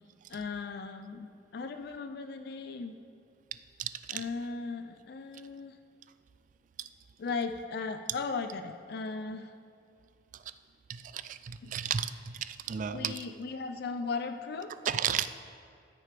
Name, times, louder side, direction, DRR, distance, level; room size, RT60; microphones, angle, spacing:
voice 1, 0.3-3.0 4.1-5.8 7.2-9.5 11.6-11.7 12.9-14.7, left 4 dB, 60° left, 8 dB, 0.4 m, -37 dB
voice 2, 3.8-4.2 10.9-13.2 14.9-15.3, right 8 dB, 45° right, 12 dB, 0.3 m, -33 dB
13.5 x 6.5 x 3.4 m, 2.3 s
head